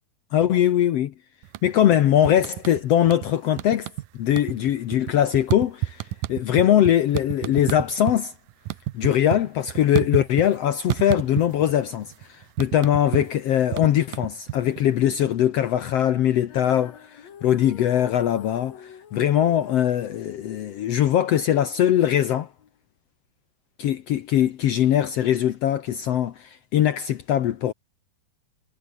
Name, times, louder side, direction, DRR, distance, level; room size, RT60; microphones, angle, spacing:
voice 1, 0.3-1.1 1.6-3.9 4.1-6.0 6.3-8.3 8.9-22.5 23.8-27.7, left 11 dB, 85° left, 1.3 m, -21 dB
sound 1, 1.4-1.9 2.2-3.3 3.6-4.1 4.3-8.2 8.5-10.6 10.9-11.8 12.0-14.9, right 16 dB, 75° right, 2.2 m, -30 dB
Female singing, 16.5-22.7, left 8 dB, 50° left, 3.1 m, -48 dB
omnidirectional pair, 4.4 m